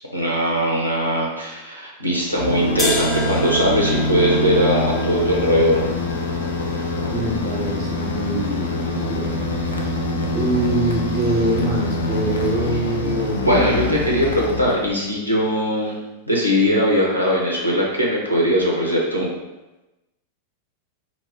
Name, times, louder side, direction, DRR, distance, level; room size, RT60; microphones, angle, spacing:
voice 1, 0.1-5.8 13.4-16.0 16.3-19.3, equal, 90° right, -4 dB, 0.5 m, -20 dB
sound 1, 2.3-15.1, left 2 dB, 70° left, 0.4 m, -25 dB
sound 2, 2.8-8.7, left 2 dB, 20° left, 0.6 m, -32 dB
voice 2, 7.1-9.5 9.8-9.9 10.3-13.4, right 1 dB, 35° right, -1 dB, 0.6 m, -24 dB
2.2 x 2.0 x 3.4 m, 1.0 s
figure-of-eight pair, 90°, 0 cm